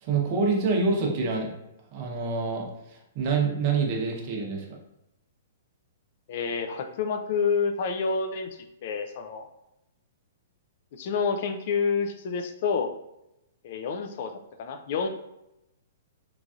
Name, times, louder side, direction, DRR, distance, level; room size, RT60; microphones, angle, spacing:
voice 1, 0.0-1.5 1.9-4.6, right 4 dB, 40° right, 0 dB, 0.7 m, -26 dB
voice 2, 6.3-8.5 8.8-9.5 10.9-12.9 13.6-15.1, left 5 dB, 50° left, 6 dB, 0.3 m, -28 dB
3.1 x 2.5 x 2.4 m, 0.86 s
hypercardioid pair, 145°, 0 cm